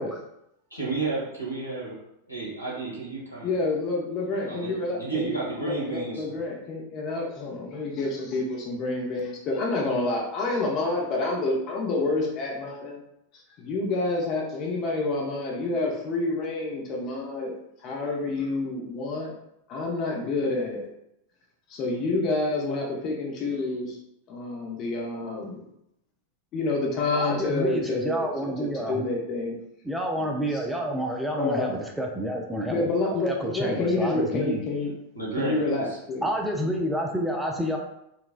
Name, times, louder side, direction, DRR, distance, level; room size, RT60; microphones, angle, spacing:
voice 1, 0.7-1.9 2.3-3.5 4.5-6.4 35.1-35.9, right 3 dB, 80° left, -4 dB, 1.2 m, -32 dB
voice 2, 3.4-5.3 5.6-13.0 13.6-17.5 17.8-19.3 19.7-20.8 21.7-24.0 24.3-25.6 26.5-28.3 28.6-29.5 30.5-30.6 30.9-31.0 31.4-31.8 32.7-34.9 35.4-36.3, left 3 dB, 35° left, -1 dB, 0.6 m, -28 dB
voice 3, 27.1-29.0 29.8-32.9 33.2-34.6 36.2-37.8, equal, 5° right, 1 dB, 0.4 m, -29 dB
4.1 x 2.2 x 2.4 m, 0.80 s
figure-of-eight pair, 90°, 0 cm